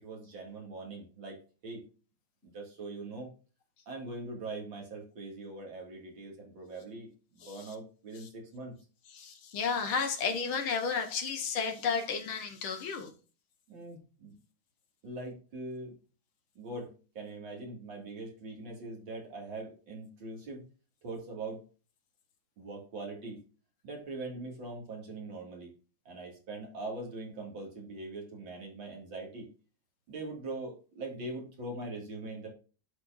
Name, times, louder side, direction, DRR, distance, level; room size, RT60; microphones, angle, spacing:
voice 1, 0.0-1.8 2.5-3.3 3.9-8.7 13.7-14.4 15.0-16.0 16.6-20.6 21.0-21.6 22.6-23.4 23.8-25.7 26.1-29.5 30.1-32.5, right 2 dB, 65° right, 3.0 m, -42 dB
voice 2, 7.4-7.7 8.2-8.3 9.1-13.1, left 5 dB, 80° left, 2.0 m, -32 dB
11.5 x 4.4 x 2.6 m
omnidirectional pair, 2.3 m